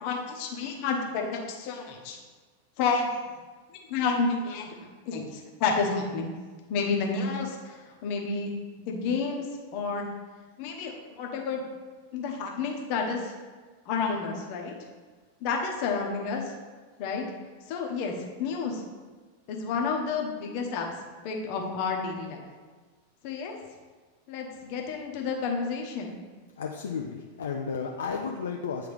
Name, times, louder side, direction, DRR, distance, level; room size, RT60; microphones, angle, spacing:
voice 1, 0.0-2.2 2.8-3.1 3.9-4.7 5.1-6.3 6.7-8.5 8.9-9.5 9.7-10.1 10.6-11.6 12.1-13.3 13.9-14.7 15.4-16.5 17.0-17.2 17.7-18.1 18.4-18.8 19.5-20.9 21.2-22.4 23.2-23.6 24.3-26.1, left 5 dB, 45° left, 1 dB, 1.0 m, -30 dB
voice 2, 26.6-28.9, left 5 dB, 65° left, 1 dB, 0.4 m, -33 dB
9.3 x 3.4 x 3.4 m, 1.4 s
figure-of-eight pair, 90°, 0 cm